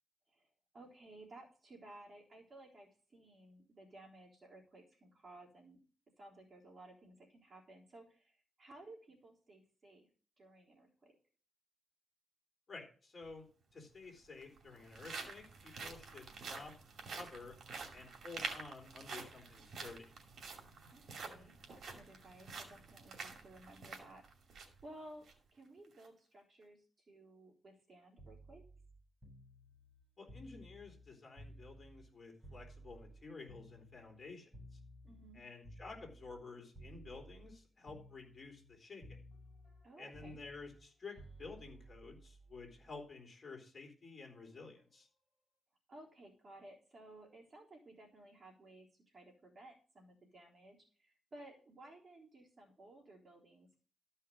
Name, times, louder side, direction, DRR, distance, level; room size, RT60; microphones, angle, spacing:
voice 1, 0.7-5.8 6.2-10.1 10.4-11.2 20.9-28.6 35.0-35.4 39.8-40.4 45.9-53.8, right 1 dB, 30° right, -2 dB, 3.6 m, -57 dB
voice 2, 12.7-16.7 17.1-17.5 17.9-20.1 30.2-34.8 35.3-39.2 40.0-45.1, left 3 dB, 35° left, 1 dB, 4.0 m, -52 dB
sound 1, 13.2-13.3 14.3-24.8 25.2-25.3 25.8-26.1, right 4 dB, 60° right, 2.5 m, -48 dB
sound 2, 28.2-32.1 32.4-36.4 36.7-37.6 37.9-38.8 39.0-43.0 44.2-44.5, right 1 dB, 5° right, 7.1 m, -57 dB
13.5 x 5.7 x 6.3 m, 0.41 s
wide cardioid pair, 130°, 0 cm